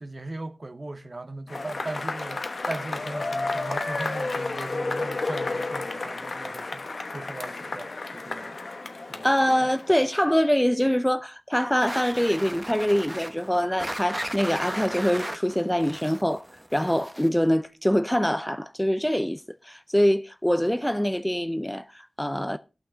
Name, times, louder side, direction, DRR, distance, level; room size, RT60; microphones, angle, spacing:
voice 1, 0.0-6.9 7.1-8.6 9.1-9.3, right 2 dB, 45° right, 1.0 m, -38 dB
Cheering / Applause / Crowd, 1.5-10.2, left 3 dB, 65° left, 1.0 m, -32 dB
voice 2, 9.2-16.4 16.7-22.6, equal, 5° left, 0.5 m, -24 dB
sound 1, 11.8-17.5, right 1 dB, 10° right, 1.0 m, -36 dB
17.0 x 5.8 x 3.7 m
wide cardioid pair, 50°, 0 cm